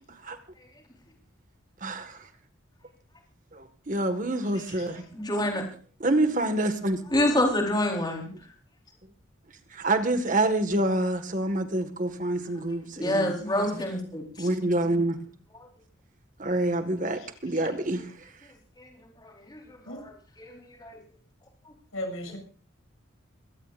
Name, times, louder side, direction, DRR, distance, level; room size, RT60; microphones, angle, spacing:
voice 1, 1.8-2.3 3.5-5.0 6.0-7.0 9.7-13.4 14.4-15.2 16.4-18.1, right 1 dB, 40° right, 8 dB, 1.8 m, -27 dB
voice 2, 5.1-5.6 7.1-8.3 13.0-14.5 15.5-15.7 18.8-18.9 19.2-19.6 19.9-21.0, left 1 dB, 20° left, 0 dB, 4.2 m, -27 dB
voice 3, 21.9-22.4, left 1 dB, 85° left, 4 dB, 7.7 m, -34 dB
22.5 x 17.5 x 2.6 m, 0.40 s
head